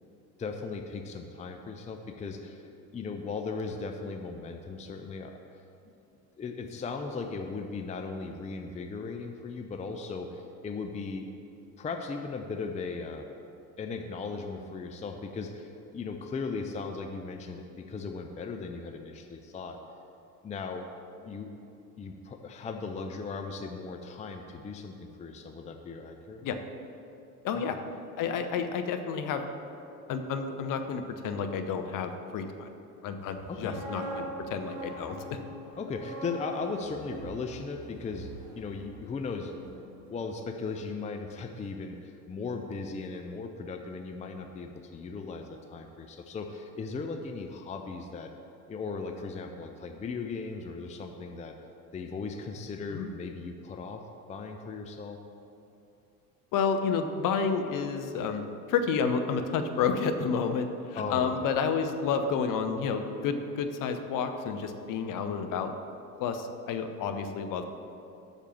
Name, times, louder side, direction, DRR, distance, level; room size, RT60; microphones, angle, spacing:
voice 1, 0.4-5.4 6.4-11.3 11.8-13.3 13.8-19.8 20.4-20.9 21.2-21.5 22.0-26.4 27.5-27.6 33.5-33.8 35.7-39.5 40.1-48.3 48.7-51.5 51.9-54.0 54.3-55.2 61.0-61.5, left 4 dB, 15° left, 5 dB, 0.6 m, -37 dB
voice 2, 27.4-27.8 28.2-29.4 30.1-32.7 33.0-35.4 52.9-53.1 56.5-65.7 66.2-67.8, left 6 dB, 45° left, 7 dB, 0.9 m, -30 dB
sound 1, 33.4-39.3 39.6-39.8, right 1 dB, 65° right, 2.4 m, -42 dB
8.0 x 6.6 x 7.2 m, 2.7 s
figure-of-eight pair, 70°, 47 cm